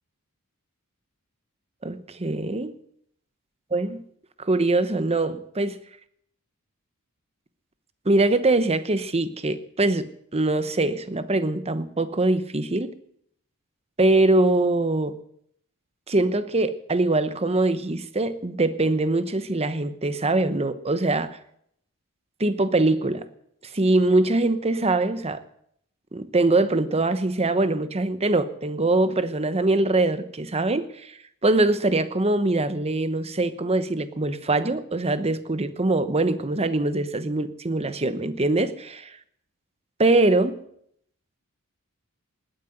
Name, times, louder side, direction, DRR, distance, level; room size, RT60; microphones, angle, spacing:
voice 1, 1.8-2.7 3.7-4.0 4.4-5.8 8.0-12.9 14.0-15.2 16.1-21.4 22.4-23.2 23.7-25.4 26.1-31.2 31.4-38.9 40.0-40.6, right 2 dB, 30° right, 12 dB, 1.0 m, -23 dB
19.0 x 9.6 x 7.9 m, 0.72 s
head